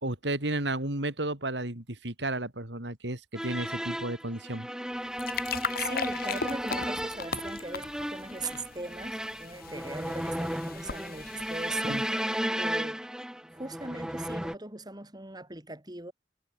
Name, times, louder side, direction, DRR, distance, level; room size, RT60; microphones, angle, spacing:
voice 1, 0.0-4.7 11.8-12.0, right 2 dB, 80° right, 4.4 m, -33 dB
sound 1, 3.3-14.5, equal, 5° right, 4.7 m, -34 dB
sound 2, 4.9-12.5, left 6 dB, 55° left, 1.3 m, -38 dB
voice 2, 5.8-13.0 13.5-16.1, right 2 dB, 25° right, 6.6 m, -40 dB
head